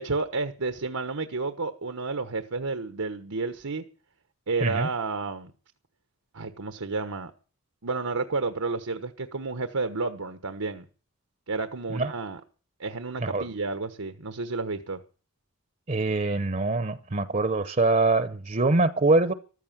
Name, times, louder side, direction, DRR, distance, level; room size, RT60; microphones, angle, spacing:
voice 1, 0.0-3.8 4.5-5.5 6.3-7.3 7.8-10.8 11.5-12.4 12.8-15.0, right 3 dB, 85° right, 1.2 m, -31 dB
voice 2, 15.9-19.3, right 2 dB, 35° right, 0.7 m, -24 dB
14.5 x 13.5 x 7.4 m
head